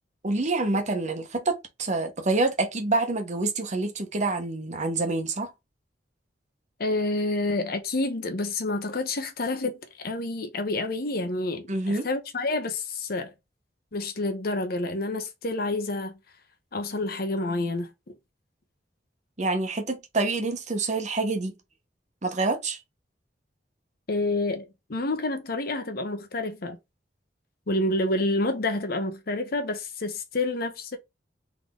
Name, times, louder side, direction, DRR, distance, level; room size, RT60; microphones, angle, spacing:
voice 1, 0.2-5.5 11.7-12.1 19.4-21.5 22.2-22.8, right 3 dB, 40° right, 1.0 m, -27 dB
voice 2, 6.8-13.3 13.9-16.2 16.7-17.9 24.1-26.8 27.7-31.0, left 2 dB, 60° left, 0.9 m, -28 dB
3.9 x 3.5 x 3.7 m
head